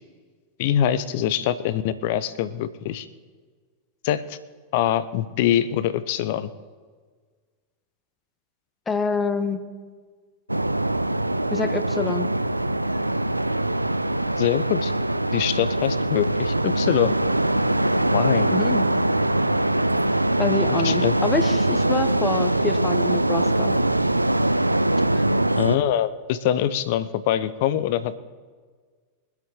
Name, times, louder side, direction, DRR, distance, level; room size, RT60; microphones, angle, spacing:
voice 1, 0.6-3.1 4.0-4.4 4.7-6.5 14.4-14.9 15.3-17.2 18.1-18.5 20.8-21.1 25.5-28.1, left 11 dB, 50° left, 15 dB, 0.8 m, -24 dB
voice 2, 8.9-9.6 11.5-12.3 18.5-19.0 20.4-23.8 25.1-25.2, left 4 dB, 15° left, 10 dB, 1.2 m, -27 dB
sound 1, 10.5-25.8, right 1 dB, 85° right, 0.4 m, -22 dB
23.5 x 8.4 x 3.9 m, 1.5 s
figure-of-eight pair, 90°, 0 cm